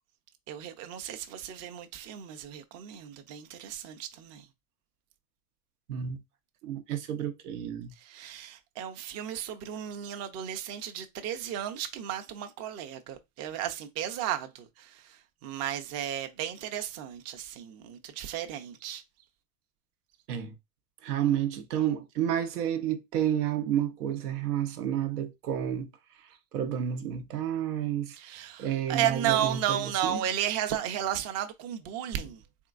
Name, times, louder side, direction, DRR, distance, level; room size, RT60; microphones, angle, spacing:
voice 1, 0.5-4.4 8.0-19.0 28.2-32.4, right 10 dB, 35° right, 0.6 m, -34 dB
voice 2, 5.9-6.2 6.6-7.9 20.3-20.5 21.0-25.9 26.5-28.2 28.6-30.2, right 10 dB, 80° right, 0.9 m, -30 dB
3.6 x 3.4 x 2.5 m
supercardioid pair, 120°, 46 cm